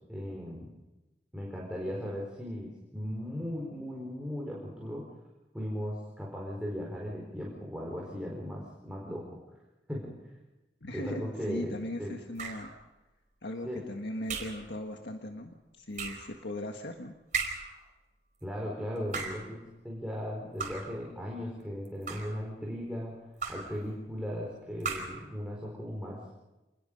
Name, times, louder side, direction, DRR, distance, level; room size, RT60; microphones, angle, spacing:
voice 1, 0.1-0.7 1.3-5.1 5.5-9.4 9.9-10.1 10.9-11.7 12.0-12.1 13.6-13.8 18.4-23.1 23.5-26.2, equal, 5° right, -3 dB, 4.4 m, -37 dB
voice 2, 10.8-12.7 13.4-17.1, left 1 dB, 75° left, 3 dB, 1.7 m, -38 dB
sound 1, 12.4-12.8 14.3-14.7 15.9-16.3 17.3-17.8 19.0-19.5 20.6-21.0 21.8-22.4 23.4-23.8 24.8-25.3, right 5 dB, 45° right, 4.7 m, -36 dB
27.5 x 21.0 x 5.3 m, 1.0 s
head